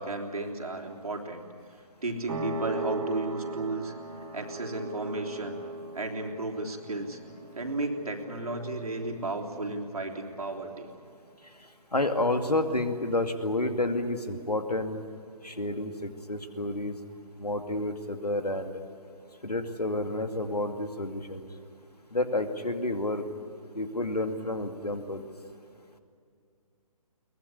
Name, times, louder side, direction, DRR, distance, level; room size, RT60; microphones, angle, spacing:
voice 1, 0.0-1.4 2.0-3.9 4.3-5.6 5.9-7.2 7.5-10.9, right 2 dB, 65° right, 2 dB, 3.5 m, -33 dB
sound 1, 2.3-10.6, right 3 dB, 50° right, 2.8 m, -40 dB
voice 2, 11.6-15.0 15.4-17.0 17.4-18.8 19.4-21.5 22.1-23.2 23.7-25.3, left 2 dB, 80° left, 7 dB, 2.4 m, -30 dB
22.5 x 20.5 x 9.9 m, 2.3 s
figure-of-eight pair, 140°, 20 cm